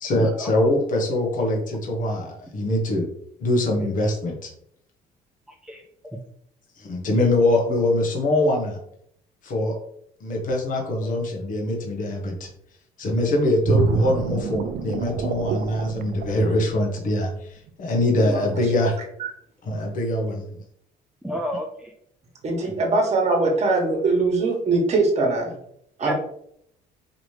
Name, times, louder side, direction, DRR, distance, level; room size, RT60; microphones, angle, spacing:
voice 1, 0.0-3.1 3.4-4.5 6.8-8.8 9.4-9.8 10.2-12.5 13.0-18.9 19.6-20.4, left 1 dB, 50° left, 1 dB, 1.3 m, -23 dB
voice 2, 5.5-5.8 21.2-21.9 26.0-26.1, equal, 5° right, 2 dB, 0.4 m, -31 dB
sound 1, 13.6-17.2 17.7-17.9, right 5 dB, 60° right, 0.5 m, -26 dB
voice 3, 18.2-18.9 19.2-19.3 22.4-25.5 26.0-26.1, right 3 dB, 40° right, 1 dB, 1.5 m, -22 dB
4.9 x 3.1 x 3.3 m, 0.70 s
cardioid pair, 110°, 17 cm